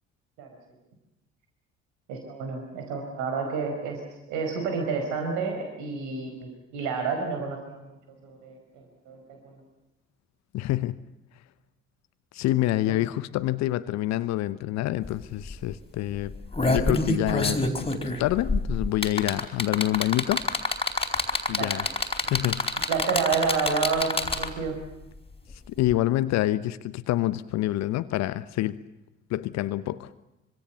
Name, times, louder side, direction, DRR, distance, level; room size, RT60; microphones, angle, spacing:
voice 1, 2.1-4.0 4.3-7.8 8.1-9.5 21.6-21.9 22.2-22.3 22.9-24.7, right 5 dB, 60° right, 4.9 m, -30 dB
voice 2, 10.5-11.0 12.3-16.4 16.6-20.5 21.5-21.9 22.3-22.7 25.7-28.8 29.3-30.1, left 15 dB, 55° left, 1.0 m, -27 dB
sound 1, 15.0-15.1 15.4-15.7 16.3-24.7 25.9-26.0, left 2 dB, 15° left, 4.1 m, -26 dB
26.5 x 25.5 x 7.0 m
figure-of-eight pair, 45°, 33 cm